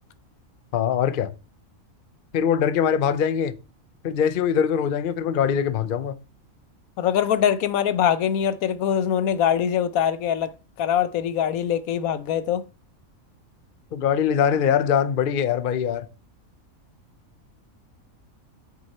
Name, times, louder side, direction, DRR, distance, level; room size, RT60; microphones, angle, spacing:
voice 1, 0.7-1.3 2.3-3.5 4.0-6.2 13.9-16.1, left 8 dB, 50° left, 0.7 m, -22 dB
voice 2, 7.0-10.5 10.8-12.6, left 9 dB, 85° left, 1.2 m, -23 dB
8.6 x 6.4 x 4.3 m
omnidirectional pair, 1.4 m